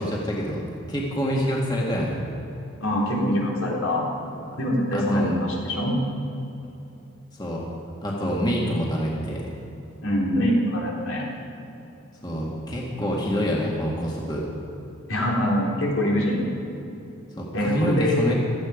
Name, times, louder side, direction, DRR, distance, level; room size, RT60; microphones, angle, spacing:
voice 1, 0.0-2.2 4.9-5.4 7.3-7.6 8.0-9.5 12.2-14.4 17.4-18.3, equal, 20° left, -3 dB, 1.9 m, -26 dB
voice 2, 2.8-4.1 4.6-6.0 10.0-11.3 15.1-16.4 17.5-18.3, equal, 80° left, -3 dB, 4.0 m, -24 dB
17.0 x 14.0 x 5.1 m, 3.0 s
head